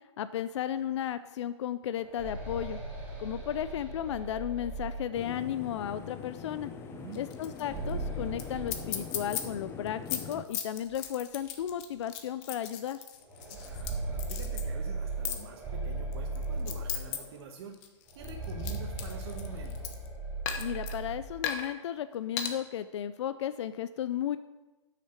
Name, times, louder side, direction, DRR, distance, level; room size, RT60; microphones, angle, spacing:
voice 1, 0.2-2.8 3.2-6.7 7.2-13.0 20.6-24.4, left 10 dB, 65° left, 13 dB, 0.4 m, -34 dB
sound 1, 1.8-5.6 7.4-9.6 9.9-10.0 10.9-11.0 11.5-11.6 13.2-17.4 18.1-21.5, right 2 dB, 10° right, 2.6 m, -38 dB
sound 2, 5.1-10.4, left 7 dB, 15° left, 0.6 m, -43 dB
voice 2, 6.9-7.2 13.5-20.0, right 6 dB, 50° right, 1 dB, 1.2 m, -47 dB
sound 3, 7.1-7.6 7.9-8.0 8.4-8.5 8.7-9.4 9.9-13.9 14.2-14.6 15.2-15.4 16.1-17.2 17.5-20.1 20.4-20.9 21.4-21.7 22.4-22.5, left 10 dB, 30° left, 1.0 m, -36 dB
8.6 x 6.6 x 6.5 m, 1.2 s
hypercardioid pair, 145°, 16 cm